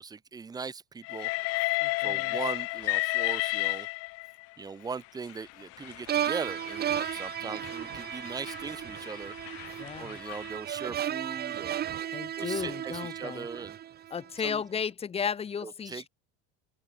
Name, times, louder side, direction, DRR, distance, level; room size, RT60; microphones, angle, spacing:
voice 1, 0.0-1.6 2.0-3.9 4.6-9.4 10.0-11.8 12.3-13.8 14.4-14.6 15.6-16.1, right 5 dB, 15° right, 0.5 m, -39 dB
Train, 1.0-4.4 5.3-10.5, left 25 dB, 55° left, 0.4 m, -33 dB
voice 2, 1.8-2.4 7.4-7.6 9.8-10.2 12.1-13.5 14.1-16.1, left 7 dB, 20° left, 0.7 m, -34 dB
sound 1, 6.1-14.3, right 10 dB, 35° right, 1.0 m, -35 dB
open air
supercardioid pair, 110°, 30 cm